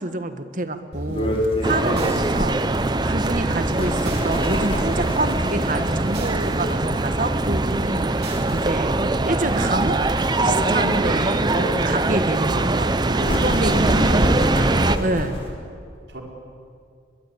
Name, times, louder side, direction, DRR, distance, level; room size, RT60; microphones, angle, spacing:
voice 1, 0.0-9.0 9.2-10.0 10.4-11.5 11.8-12.9 13.4-14.3 15.0-15.4, right 2 dB, 45° right, 9 dB, 1.5 m, -27 dB
sound 1, 0.9-4.6 4.8-6.7 6.9-9.3, right 1 dB, 65° right, 4.1 m, -35 dB
sound 2, 1.1-15.5, equal, 30° left, 4.2 m, -29 dB
sound 3, 1.6-15.0, right 2 dB, 25° right, 0.8 m, -22 dB
voice 2, 13.1-15.0 16.1-16.2, right 1 dB, 85° right, 0 dB, 4.7 m, -32 dB
22.5 x 22.0 x 8.5 m, 2.3 s
head